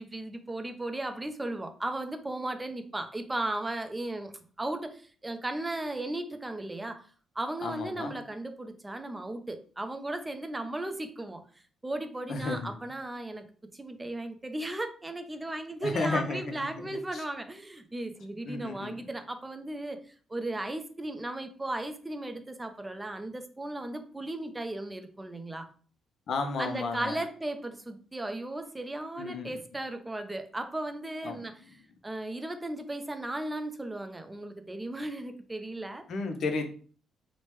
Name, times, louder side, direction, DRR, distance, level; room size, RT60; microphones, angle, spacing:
voice 1, 0.0-7.1 7.4-11.4 11.8-13.5 13.7-25.7 26.6-31.6 32.0-36.0, right 1 dB, 15° right, 8 dB, 0.4 m, -36 dB
voice 2, 7.6-8.2 12.3-12.7 15.8-17.2 18.5-19.1 26.3-27.2 29.2-29.6 31.2-31.4 36.1-36.7, left 3 dB, 60° left, 6 dB, 0.5 m, -33 dB
3.1 x 2.0 x 3.0 m, 0.43 s
cardioid pair, 90°, 0 cm